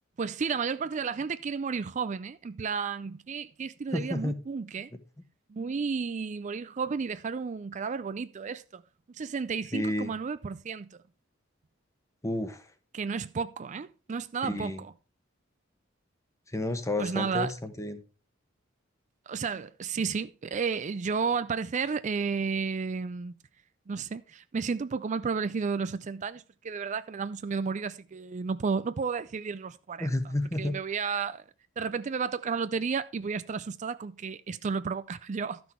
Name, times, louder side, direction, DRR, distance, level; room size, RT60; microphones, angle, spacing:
voice 1, 0.2-4.9 5.5-8.8 9.1-11.0 12.9-14.9 17.0-17.5 19.3-23.3 23.9-30.1 30.6-31.4 31.8-35.6, right 5 dB, 40° right, 0.4 m, -32 dB
voice 2, 3.9-4.3 9.7-10.1 12.2-12.7 14.4-14.8 16.5-18.0 30.0-30.7, left 1 dB, 15° left, 1.0 m, -31 dB
13.0 x 6.1 x 4.4 m
head